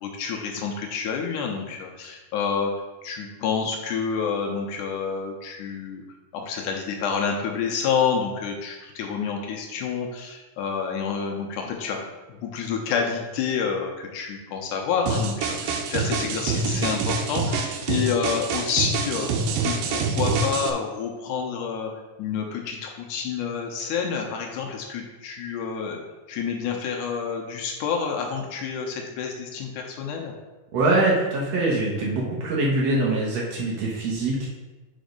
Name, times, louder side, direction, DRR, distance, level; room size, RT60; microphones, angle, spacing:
voice 1, 0.0-2.7 3.0-6.0 6.3-19.3 19.6-21.9 22.2-26.0 26.3-30.3, left 6 dB, 80° left, 1 dB, 2.1 m, -28 dB
sound 1, 15.1-20.7, right 4 dB, 90° right, 2.4 m, -26 dB
voice 2, 30.7-34.5, right 2 dB, 60° right, -4 dB, 2.0 m, -23 dB
5.2 x 5.1 x 5.1 m, 1.2 s
omnidirectional pair, 3.8 m